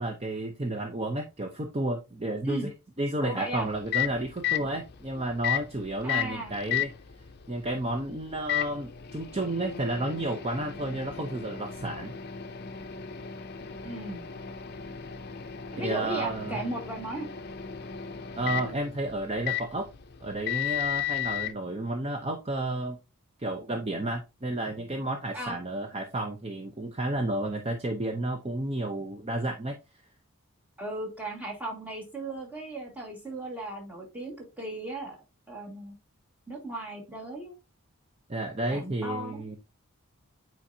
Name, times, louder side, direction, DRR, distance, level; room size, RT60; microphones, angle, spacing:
voice 1, 0.0-2.7 3.0-6.9 7.5-12.1 15.8-16.6 18.3-19.9 20.2-23.0 23.4-29.8 38.3-39.6, right 1 dB, 25° right, 4 dB, 0.7 m, -31 dB
voice 2, 3.2-3.7 6.0-6.5 13.8-14.3 15.7-17.3 25.3-25.6 30.8-35.2 35.5-36.0 36.5-37.5 38.7-39.4, right 1 dB, 5° right, -2 dB, 1.9 m, -36 dB
Microwave oven, 3.5-21.5, left 11 dB, 45° left, 0.6 m, -35 dB
8.7 x 4.5 x 2.7 m, 0.26 s
head